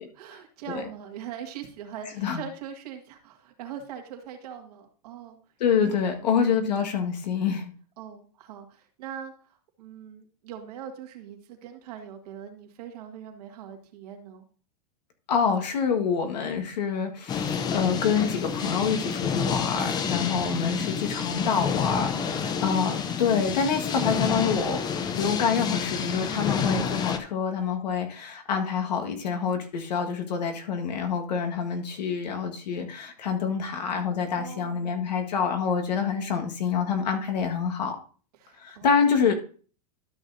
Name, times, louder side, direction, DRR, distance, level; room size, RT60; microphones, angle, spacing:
voice 1, 0.2-5.4 5.8-6.6 6.9-7.1 8.0-14.4 20.1-20.5 22.2-22.6 34.3-35.1 38.4-39.0, right 8 dB, 65° right, 3 dB, 1.9 m, -42 dB
voice 2, 5.6-7.7 15.3-24.8 25.2-38.0 38.6-39.3, left 6 dB, 85° left, 4 dB, 1.6 m, -26 dB
sound 1, 17.3-27.2, left 6 dB, 20° left, 0.6 m, -29 dB
12.5 x 6.2 x 2.7 m, 0.40 s
supercardioid pair, 140°, 21 cm